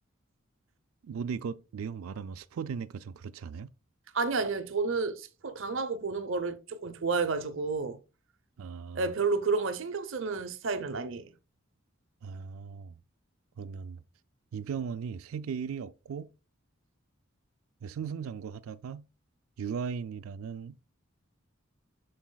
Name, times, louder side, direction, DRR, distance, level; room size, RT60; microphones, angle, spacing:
voice 1, 1.0-3.7 8.6-9.1 12.2-13.0 13.6-14.0 14.5-16.3 17.8-19.1 19.6-20.8, right 6 dB, 85° right, 0.4 m, -37 dB
voice 2, 4.1-8.0 8.9-11.3, right 4 dB, 65° right, 0.8 m, -31 dB
11.5 x 4.0 x 2.3 m
head